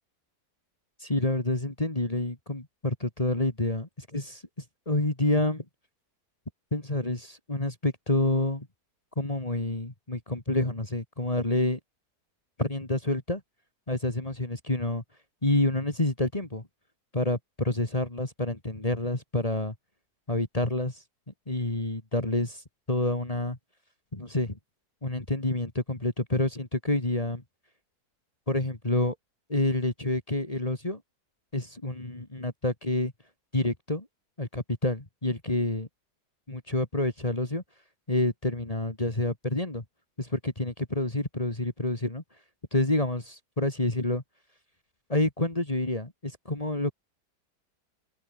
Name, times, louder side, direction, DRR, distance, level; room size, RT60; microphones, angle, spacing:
voice 1, 1.0-4.4 4.9-5.6 6.7-8.7 9.2-11.8 12.6-13.4 13.9-15.0 15.4-16.7 17.1-19.7 20.3-21.0 21.5-23.6 24.1-24.6 25.0-27.4 28.5-29.2 29.5-31.0 31.5-33.1 33.5-34.1 34.4-35.9 36.5-37.6 38.1-39.8 40.2-42.2 42.7-44.2 45.1-46.9, left 1 dB, 20° left, 2.6 m, -28 dB
omnidirectional pair, 1.7 m